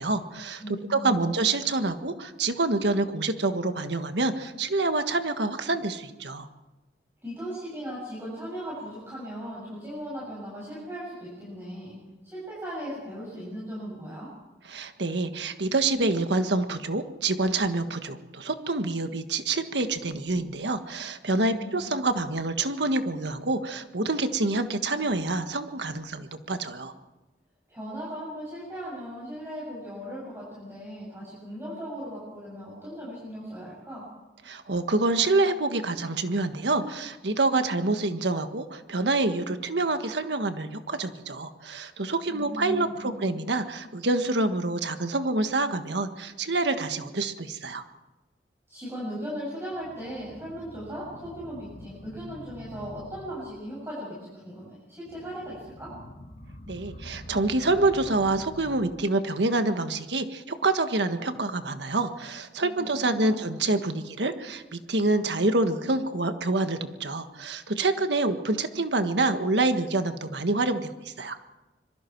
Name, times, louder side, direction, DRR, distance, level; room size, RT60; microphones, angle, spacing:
voice 1, 0.0-6.5 14.7-26.9 34.5-47.8 56.7-71.4, right 2 dB, 80° right, 8 dB, 1.6 m, -27 dB
voice 2, 0.6-1.4 7.2-12.0 12.2-14.3 21.3-21.8 27.7-34.1 42.3-43.3 48.7-55.9 62.6-63.5, equal, 15° right, -7 dB, 7.5 m, -38 dB
sound 1, 49.7-53.8 55.1-59.1, left 1 dB, 55° left, 2.4 m, -46 dB
26.0 x 22.5 x 4.7 m, 1.1 s
head